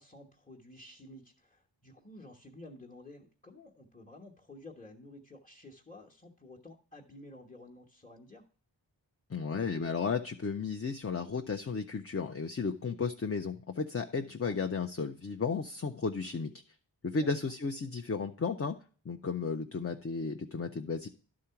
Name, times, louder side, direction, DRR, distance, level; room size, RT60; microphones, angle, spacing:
voice 1, 0.0-8.5 14.2-14.6 17.2-17.3, left 1 dB, 15° left, -1 dB, 1.1 m, -52 dB
voice 2, 9.3-16.5 17.0-18.7 19.1-21.1, left 5 dB, 30° left, 6 dB, 0.5 m, -34 dB
11.0 x 3.8 x 5.7 m, 0.41 s
wide cardioid pair, 45°, 48 cm